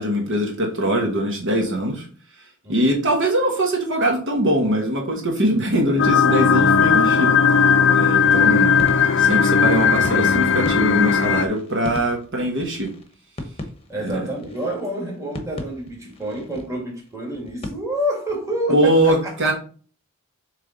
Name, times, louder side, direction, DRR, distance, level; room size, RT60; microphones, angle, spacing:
voice 1, 0.0-2.1 2.7-7.3 7.9-8.8 9.2-12.9 14.0-14.3 18.7-19.5, right 1 dB, 55° right, 1.2 m, -22 dB
voice 2, 2.6-3.0 13.9-19.3, equal, 15° right, 2.0 m, -28 dB
sound 1, 6.0-11.5, left 6 dB, 55° left, 0.6 m, -17 dB
sound 2, 8.1-17.7, left 1 dB, 25° left, 1.0 m, -38 dB
7.4 x 3.4 x 3.9 m
head